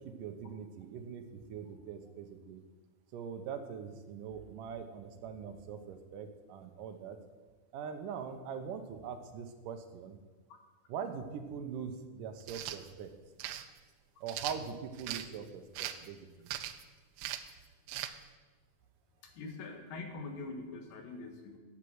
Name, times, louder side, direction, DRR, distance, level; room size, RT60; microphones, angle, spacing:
voice 1, 0.2-2.6 3.1-7.2 7.7-10.2 10.9-13.1 14.2-16.5, right 7 dB, 70° right, 7 dB, 2.2 m, -42 dB
sound 1, 12.4-12.8 13.4-13.6 14.3-15.3 15.7-16.1 16.5-16.8 17.2-17.5 17.9-18.1, right 13 dB, 90° right, 2.6 m, -39 dB
voice 2, 19.2-21.6, left 3 dB, 70° left, 4 dB, 3.2 m, -44 dB
12.0 x 8.9 x 7.9 m, 1.3 s
omnidirectional pair, 4.5 m